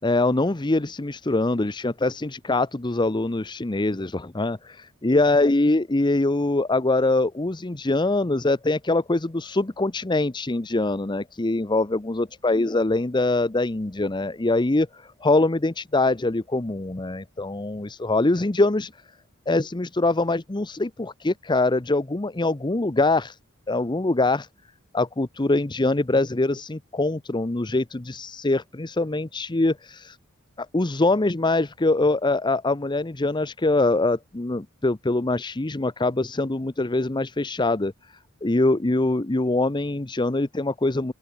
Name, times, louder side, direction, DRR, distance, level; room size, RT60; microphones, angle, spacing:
voice 1, 0.0-18.9 19.5-23.3 23.7-24.5 24.9-30.2 30.6-37.9 38.4-41.1, left 2 dB, 20° left, 0.8 m, -23 dB
open air
head